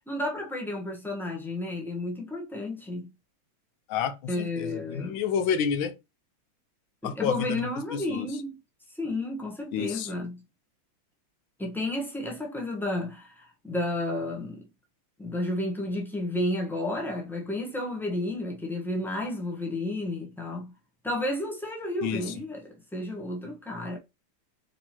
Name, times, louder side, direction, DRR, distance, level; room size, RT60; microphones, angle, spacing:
voice 1, 0.1-3.1 4.3-5.2 7.0-8.6 9.0-10.4 11.6-14.6 15.2-20.7 21.0-24.0, left 1 dB, ahead, 0.5 m, -32 dB
voice 2, 3.9-5.9 7.0-8.3 9.7-10.1 22.0-22.3, left 7 dB, 80° left, 1.5 m, -29 dB
4.3 x 3.8 x 2.8 m
omnidirectional pair, 2.2 m